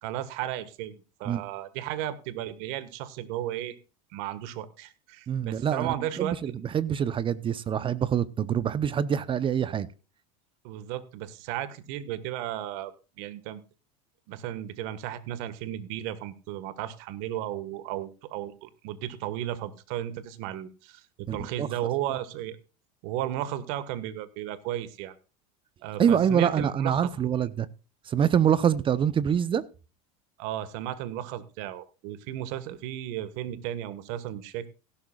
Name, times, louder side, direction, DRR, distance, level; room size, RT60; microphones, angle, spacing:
voice 1, 0.0-3.8 4.1-6.4 10.6-13.6 14.3-22.6 23.0-25.1 25.8-27.1 27.4-27.5 30.4-34.7, right 12 dB, 65° right, 1.6 m, -34 dB
voice 2, 5.3-9.9 21.3-21.7 26.0-27.7 28.1-29.6, right 8 dB, 25° right, 0.8 m, -25 dB
17.0 x 12.0 x 2.4 m
supercardioid pair, 120°, 19 cm